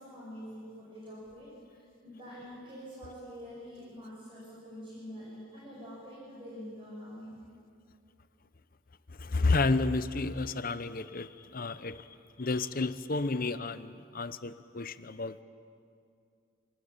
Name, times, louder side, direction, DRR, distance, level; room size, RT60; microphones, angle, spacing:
voice 1, 0.0-7.4, equal, 25° right, -9 dB, 7.9 m, -46 dB
voice 2, 9.1-15.4, left 3 dB, 45° left, 13 dB, 0.8 m, -31 dB
27.0 x 20.0 x 8.9 m, 2.4 s
head